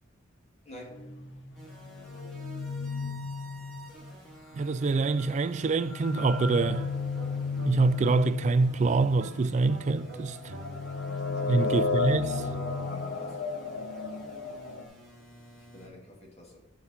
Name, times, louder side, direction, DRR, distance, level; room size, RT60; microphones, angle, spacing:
voice 1, 0.7-1.1 11.3-11.7 12.9-13.4 15.7-16.6, left 1 dB, 35° left, 2.2 m, -48 dB
sound 1, 0.9-4.1 4.6-14.8, left 4 dB, 65° left, 0.9 m, -34 dB
sound 2, 1.5-15.9, right 1 dB, ahead, 2.3 m, -52 dB
voice 2, 4.5-6.9 7.7-10.4 11.5-12.4, right 3 dB, 40° right, 0.3 m, -25 dB
sound 3, 6.2-11.1 11.5-13.1, right 2 dB, 65° right, 0.9 m, -45 dB
9.5 x 5.9 x 4.1 m
head